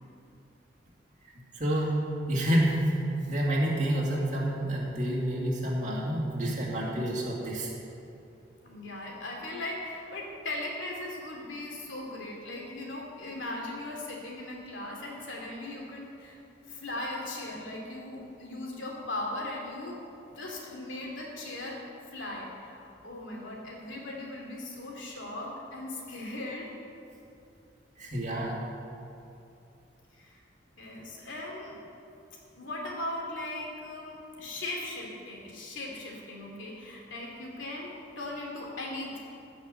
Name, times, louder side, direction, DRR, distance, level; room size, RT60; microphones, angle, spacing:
voice 1, 1.5-2.0 2.3-7.7 28.0-28.6, right 1 dB, 40° right, -4 dB, 2.4 m, -28 dB
voice 2, 8.6-16.4 16.7-20.0 20.3-21.8 22.1-26.7 30.1-30.4 30.8-31.8 32.6-39.2, left 2 dB, 90° left, -1 dB, 2.7 m, -38 dB
15.5 x 6.0 x 6.7 m, 2.7 s
head